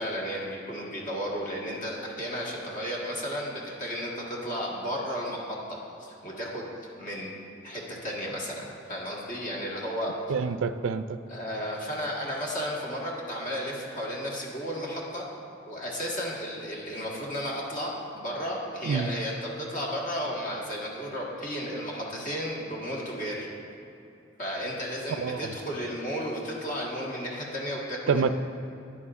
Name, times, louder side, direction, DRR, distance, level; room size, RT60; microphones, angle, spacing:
voice 1, 0.0-6.7 7.0-7.3 7.6-10.1 11.3-15.2 15.7-23.5 24.4-28.3, equal, 45° left, -3 dB, 1.6 m, -33 dB
voice 2, 10.3-11.2 18.9-19.1 25.2-25.5 28.1-28.3, right 5 dB, 80° right, 11 dB, 0.3 m, -27 dB
10.0 x 9.8 x 2.5 m, 2.8 s
head